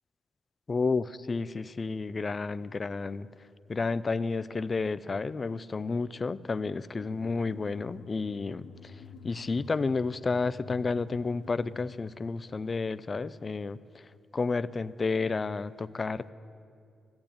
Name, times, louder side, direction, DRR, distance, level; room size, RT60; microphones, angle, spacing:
voice 1, 0.7-3.3 3.7-9.0 9.2-14.0 14.3-16.3, left 4 dB, 30° left, 15 dB, 0.4 m, -31 dB
sound 1, 7.0-12.0, left 5 dB, 80° left, 1.4 m, -49 dB
15.0 x 10.5 x 8.8 m, 2.5 s
wide cardioid pair, 140°, 0 cm